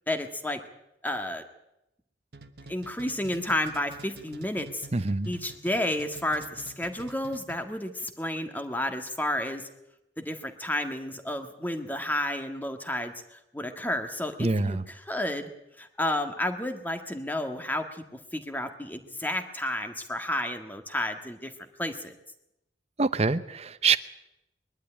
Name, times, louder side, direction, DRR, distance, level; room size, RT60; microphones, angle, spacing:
voice 1, 0.1-0.6 1.0-1.4 2.7-4.9 5.3-9.6 10.2-15.5 15.8-18.0 18.3-21.5 21.8-22.1, left 1 dB, 10° left, 6 dB, 1.7 m, -31 dB
sound 1, 2.3-7.8, right 2 dB, 65° right, 1.3 m, -48 dB
voice 2, 4.9-5.3 14.4-14.8 23.0-24.0, right 4 dB, 35° right, 14 dB, 0.8 m, -25 dB
22.0 x 12.0 x 10.0 m, 0.87 s
head